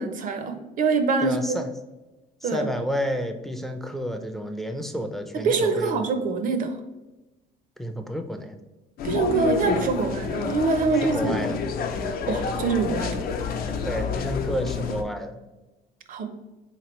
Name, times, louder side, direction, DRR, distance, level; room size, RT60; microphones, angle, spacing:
voice 1, 0.0-1.6 2.4-2.7 5.4-6.7 9.0-11.6 12.3-13.2 16.1-16.3, right 4 dB, 55° right, 7 dB, 0.5 m, -24 dB
voice 2, 1.2-1.7 2.4-6.1 7.8-8.6 11.0-11.6 13.8-15.4, equal, ahead, 6 dB, 0.4 m, -30 dB
sound 1, 9.0-15.0, left 5 dB, 60° left, 0.5 m, -29 dB
3.8 x 2.9 x 3.0 m, 1.1 s
cardioid pair, 110°, 17 cm